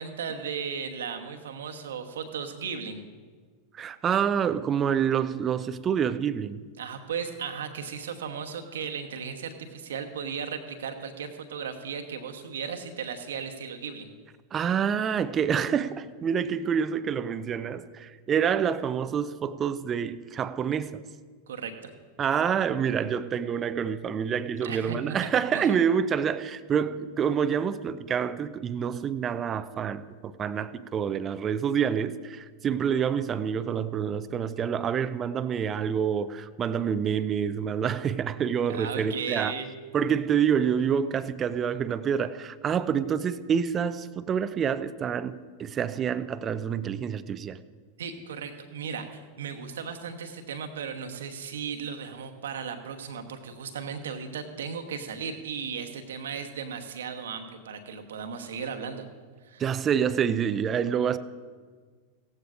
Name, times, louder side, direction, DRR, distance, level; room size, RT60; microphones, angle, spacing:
voice 1, 0.0-3.1 6.8-14.1 21.5-21.9 24.6-25.6 38.7-39.7 48.0-59.1 59.4-59.6, right 6 dB, 65° right, 1.1 m, -36 dB
voice 2, 3.7-6.6 14.5-21.0 22.2-39.5 39.9-47.6 59.6-61.2, right 7 dB, 25° right, 0.5 m, -27 dB
17.0 x 14.5 x 2.6 m
figure-of-eight pair, 90°, 0 cm